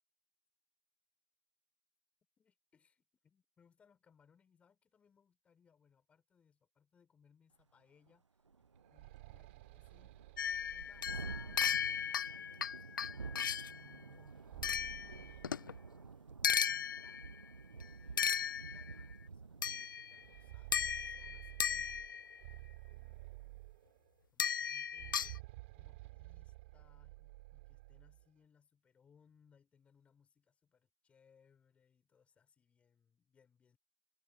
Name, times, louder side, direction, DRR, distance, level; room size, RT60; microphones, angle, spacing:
voice 1, 2.4-8.3 8.9-10.2 10.7-17.2 17.7-22.4 22.9-23.7 24.3-33.8, left 6 dB, 10° left, 5.7 m, -70 dB
Thunderstorm, 7.6-7.7 8.1-8.2 8.5-22.1, right 5 dB, 80° right, 0.4 m, -51 dB
sound 1, 8.6-12.4 14.2-16.4 16.7-16.8 17.7-17.8 18.3-18.4 20.0-24.2 24.9-28.3, right 21 dB, 25° right, 3.3 m, -53 dB
sound 2, 10.4-13.8 14.6-15.7 16.4-17.4 18.2-19.0 19.6-20.2 20.7-22.4 24.4-25.4, left 7 dB, 45° left, 0.4 m, -36 dB
figure-of-eight pair, 135°, 15 cm